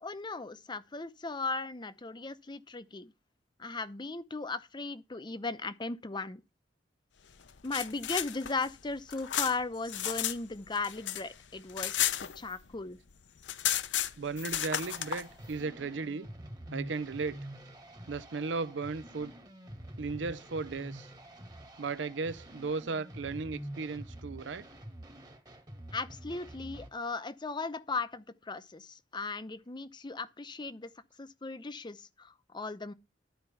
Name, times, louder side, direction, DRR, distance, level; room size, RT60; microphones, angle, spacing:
voice 1, 0.0-3.1 3.6-6.4 7.6-12.0 12.4-13.0 25.9-30.9 31.2-32.9, left 3 dB, 25° left, 0.7 m, -37 dB
sound 1, 7.5-10.4 10.7-12.8 13.1-13.2 13.4-15.2, left 11 dB, 85° left, 0.8 m, -33 dB
voice 2, 14.2-16.3 16.7-17.5 18.1-19.3 20.0-21.1 21.8-24.7, right 4 dB, 80° right, 0.6 m, -36 dB
sound 2, 14.8-26.9, right 1 dB, 25° right, 1.5 m, -47 dB
11.5 x 4.4 x 5.6 m
head